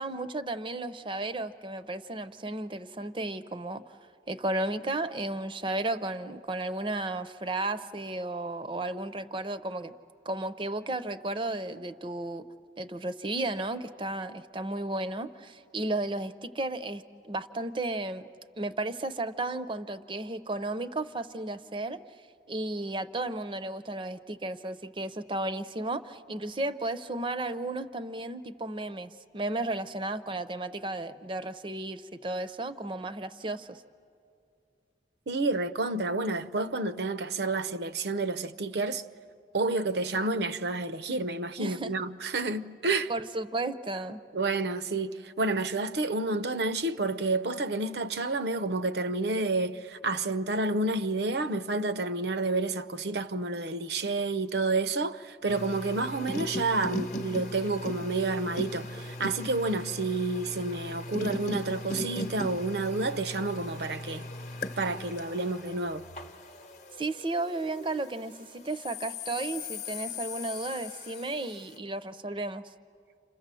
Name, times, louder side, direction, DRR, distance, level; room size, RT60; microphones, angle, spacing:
voice 1, 0.0-3.8 4.3-9.9 10.3-12.5 12.8-18.2 18.6-22.0 22.5-33.8 41.6-41.9 43.1-44.2 67.0-72.6, right 2 dB, 30° right, 0.6 m, -34 dB
voice 2, 35.3-39.0 39.5-43.1 44.3-64.3 64.8-66.1, right 2 dB, 70° right, 0.7 m, -30 dB
sound 1, 55.5-68.1 68.7-71.6, left 1 dB, 40° left, 0.9 m, -38 dB
29.0 x 27.0 x 7.6 m
head